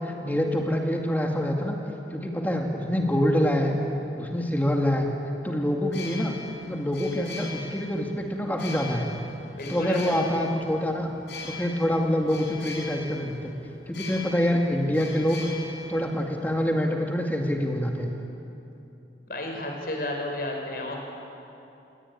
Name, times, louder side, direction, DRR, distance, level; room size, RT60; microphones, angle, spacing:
voice 1, 0.0-1.8 2.1-3.7 4.2-5.1 5.4-6.3 6.6-9.1 9.7-11.1 11.4-13.5 13.9-15.5 15.9-18.1, equal, 10° left, 1 dB, 2.3 m, -26 dB
sound 1, 5.8-16.6, left 4 dB, 80° left, 7.0 m, -42 dB
voice 2, 9.6-10.2 19.3-21.0, left 1 dB, 55° left, 2 dB, 5.5 m, -32 dB
29.0 x 20.5 x 9.9 m, 2.8 s
head